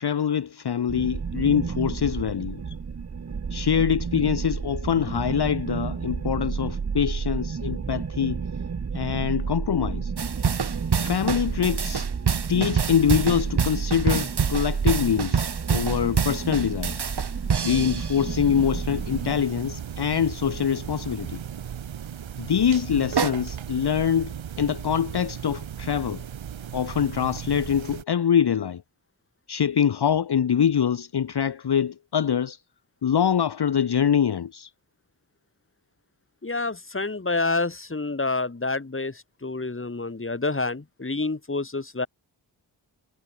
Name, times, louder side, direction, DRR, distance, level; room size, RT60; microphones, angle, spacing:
voice 1, 0.0-2.6 3.5-8.4 8.9-10.1 11.0-12.1 12.5-17.1 17.6-21.4 22.4-26.2 26.7-28.8 29.5-32.6 33.0-34.7, left 8 dB, 55° left, 1.0 m, -24 dB
sound 1, 0.9-19.4, right 5 dB, 35° right, 0.9 m, -31 dB
sound 2, 10.2-18.3 23.2-23.3, right 6 dB, 55° right, 1.6 m, -26 dB
sound 3, 14.5-28.0, right 9 dB, 70° right, 1.2 m, -37 dB
voice 2, 36.4-42.1, left 3 dB, 25° left, 2.1 m, -28 dB
cardioid pair, 45°, 49 cm